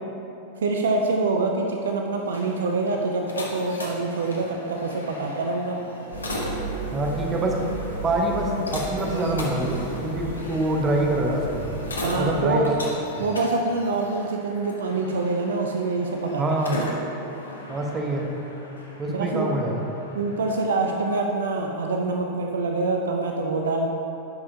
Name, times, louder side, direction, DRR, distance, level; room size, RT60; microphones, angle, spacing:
voice 1, 0.6-5.8 12.0-12.7 13.2-16.4 19.1-19.5 20.1-23.9, right 3 dB, 65° right, 2 dB, 0.5 m, -25 dB
sound 1, 2.1-20.6, left 1 dB, 75° left, 0.9 m, -38 dB
sound 2, 6.1-12.4, right 2 dB, 90° right, 1.1 m, -34 dB
voice 2, 6.9-7.6 8.0-11.7 12.1-12.7 16.4-16.8 17.7-18.3 19.0-19.8, right 1 dB, 20° right, 0 dB, 0.9 m, -25 dB
10.5 x 5.4 x 2.7 m, 2.9 s
figure-of-eight pair, 90°, 0 cm